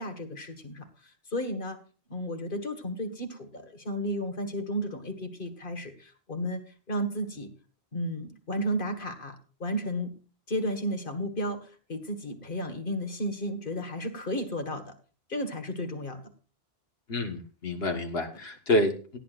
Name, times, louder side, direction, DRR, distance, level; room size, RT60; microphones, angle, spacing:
voice 1, 0.0-1.8 2.1-6.6 6.9-7.5 7.9-10.1 10.5-14.9 15.3-16.2, equal, 55° left, 7 dB, 2.0 m, -33 dB
voice 2, 17.1-19.2, left 1 dB, 75° left, 4 dB, 1.9 m, -28 dB
18.0 x 11.0 x 2.6 m, 0.37 s
omnidirectional pair, 1.1 m